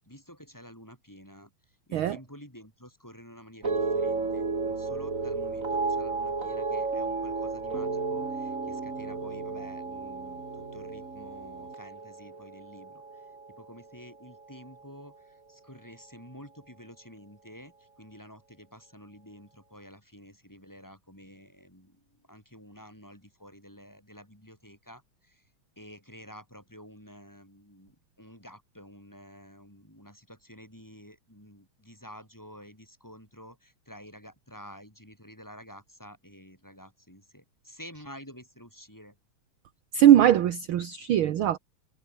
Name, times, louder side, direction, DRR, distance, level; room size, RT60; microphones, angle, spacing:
voice 1, 0.0-25.5 25.8-39.2, equal, 5° left, 6.8 m, -50 dB
sound 1, 3.6-14.0 14.3-14.9, right 4 dB, 25° right, 2.8 m, -33 dB
voice 2, 39.9-41.6, right 11 dB, 60° right, 1.4 m, -20 dB
omnidirectional pair, 3.4 m